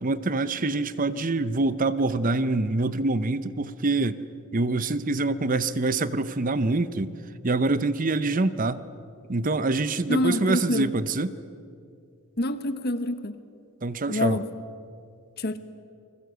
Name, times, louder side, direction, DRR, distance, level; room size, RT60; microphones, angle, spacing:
voice 1, 0.0-4.2 4.5-7.1 7.4-8.8 9.3-11.3 13.8-14.4, right 2 dB, 35° right, 15 dB, 0.7 m, -25 dB
voice 2, 10.1-10.9 12.4-13.3 14.1-14.4 15.4-15.6, left 1 dB, 45° left, 11 dB, 1.3 m, -26 dB
29.0 x 21.5 x 8.0 m, 2.4 s
head